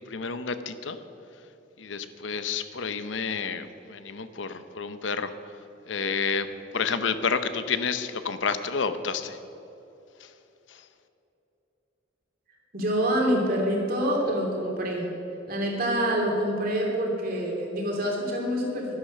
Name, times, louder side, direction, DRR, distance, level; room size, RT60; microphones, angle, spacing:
voice 1, 0.1-1.0 1.8-5.3 5.9-6.5 6.7-9.4, left 5 dB, 85° left, 11 dB, 0.7 m, -29 dB
voice 2, 12.7-15.0 15.5-19.0, equal, 55° right, -1 dB, 2.9 m, -26 dB
12.0 x 11.0 x 6.5 m, 2.9 s
head